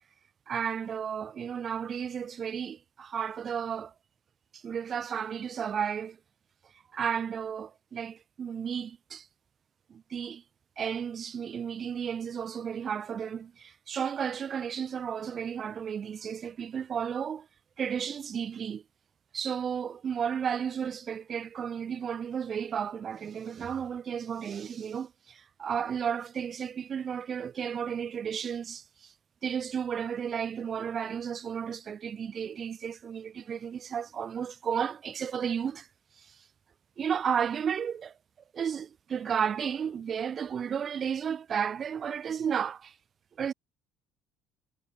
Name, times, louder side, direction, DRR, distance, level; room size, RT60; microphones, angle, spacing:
voice 1, 0.5-3.9 4.5-6.2 6.9-9.3 9.9-10.4 10.8-17.5 17.8-18.8 19.3-29.1 29.4-35.9 36.2-36.3 37.0-38.1 38.5-42.9 43.4-43.5, right 7 dB, 35° right, 6.7 m, -33 dB
cardioid pair, 130°, 0 cm